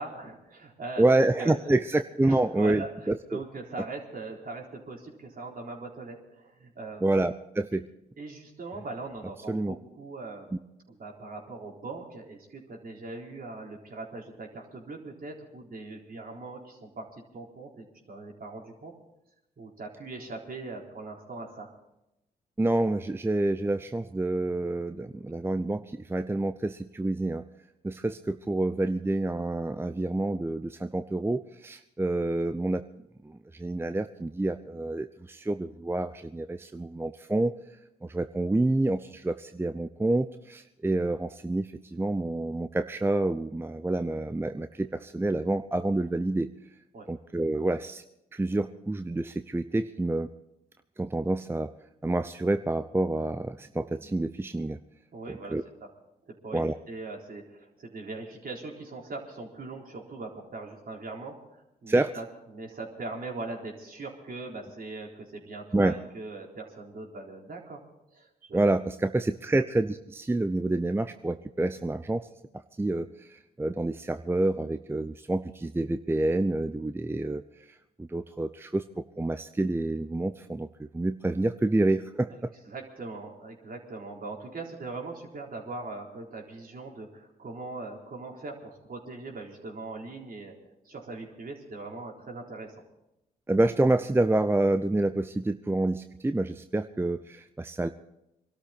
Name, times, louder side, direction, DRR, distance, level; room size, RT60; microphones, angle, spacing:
voice 1, 0.0-1.1 1.4-1.7 2.2-7.0 8.2-10.6 10.9-18.9 19.6-21.7 46.9-47.1 55.1-55.6 56.3-62.2 62.5-67.8 68.1-68.7 82.7-90.5 90.8-92.8, right 3 dB, 45° right, 0 dB, 4.1 m, -40 dB
voice 2, 1.0-3.4 7.0-7.9 9.5-9.8 10.5-10.6 22.6-27.4 27.8-32.9 33.2-37.6 38.0-46.5 47.1-48.0 48.3-50.3 51.0-51.7 52.0-54.8 55.3-55.6 56.5-56.7 61.9-62.2 65.7-65.9 68.5-72.3 72.8-77.4 78.0-82.5 93.5-97.9, right 2 dB, 10° right, 10 dB, 0.7 m, -28 dB
23.5 x 13.0 x 4.2 m, 0.87 s
hypercardioid pair, 45°, 20 cm